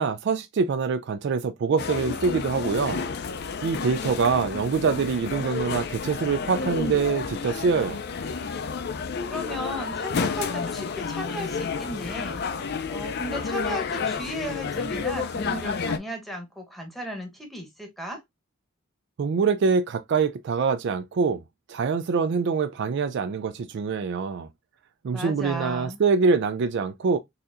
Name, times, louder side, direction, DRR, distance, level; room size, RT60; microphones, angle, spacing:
voice 1, 0.0-3.1 3.6-8.0 19.2-21.4 21.7-24.5 25.0-27.2, right 5 dB, 55° right, 0.3 m, -24 dB
sound 1, 1.8-16.0, left 5 dB, 50° left, 0.4 m, -30 dB
voice 2, 9.3-12.4 12.9-18.2 25.1-26.0, equal, ahead, 1.0 m, -35 dB
4.0 x 2.7 x 2.5 m
head